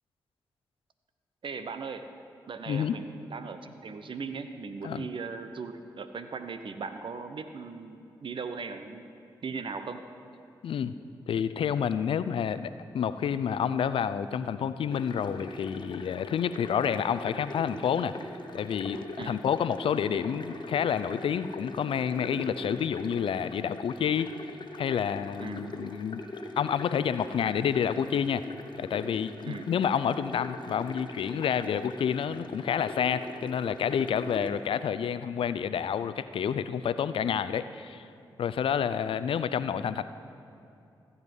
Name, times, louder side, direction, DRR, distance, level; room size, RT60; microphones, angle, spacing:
voice 1, 1.4-2.1 2.5-9.0 9.4-10.0 19.2-19.4 25.4-25.6 29.4-29.6, right 5 dB, 65° right, 9 dB, 0.9 m, -38 dB
voice 2, 2.7-3.0 4.8-5.1 10.6-10.9 11.3-18.1 18.5-24.3 24.8-26.2 26.6-28.4 28.8-38.1 38.4-40.0, left 8 dB, 70° left, 13 dB, 0.5 m, -29 dB
sound 1, 14.9-34.5, left 2 dB, 55° left, 1.2 m, -42 dB
14.5 x 8.1 x 5.4 m, 2.7 s
supercardioid pair, 40°, 9 cm